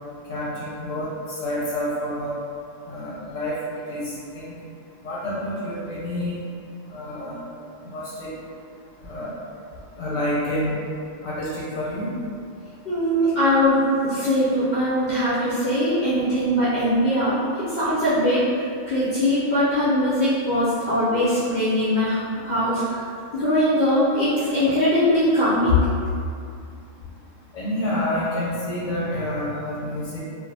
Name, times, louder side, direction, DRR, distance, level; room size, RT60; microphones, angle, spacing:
voice 1, 0.3-2.4 2.9-3.6 3.9-4.4 5.0-6.4 6.9-7.4 7.8-8.3 9.0-9.3 10.0-10.8 11.2-12.1 27.5-30.2, left 1 dB, 90° left, -7 dB, 1.0 m, -28 dB
voice 2, 12.9-17.4 17.7-23.0 23.3-25.9, left 1 dB, 60° left, -11 dB, 0.5 m, -21 dB
2.5 x 2.1 x 2.6 m, 2.4 s
omnidirectional pair, 1.3 m